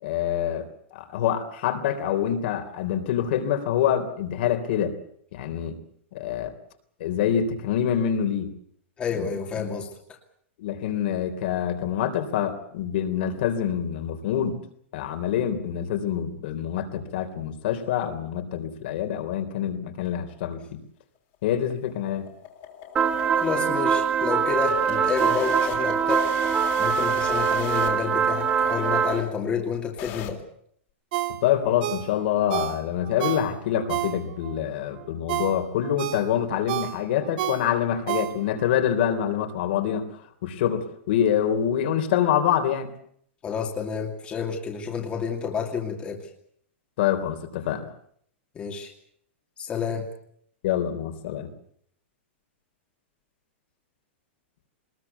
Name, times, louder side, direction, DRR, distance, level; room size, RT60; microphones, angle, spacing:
voice 1, 0.0-0.7 0.9-5.0 5.3-5.8 6.1-6.5 7.0-8.5 9.1-9.3 9.6-9.7 10.6-14.6 14.9-20.8 21.4-22.3 31.4-40.1 40.4-42.9 47.0-47.9 50.6-51.5, left 9 dB, 50° left, 6 dB, 3.5 m, -26 dB
voice 2, 9.0-9.9 23.4-26.3 26.8-30.4 43.4-46.3 48.5-48.9 49.6-50.1, left 6 dB, 15° left, 1 dB, 2.6 m, -29 dB
sound 1, 21.3-30.3, left 9 dB, 35° left, 3.4 m, -38 dB
sound 2, 23.0-29.2, right 7 dB, 15° right, 1.3 m, -23 dB
Ringtone, 31.1-34.6 35.0-38.7 39.1-39.2, right 14 dB, 50° right, 2.1 m, -31 dB
22.5 x 20.5 x 8.3 m, 0.67 s
supercardioid pair, 165°, 7 cm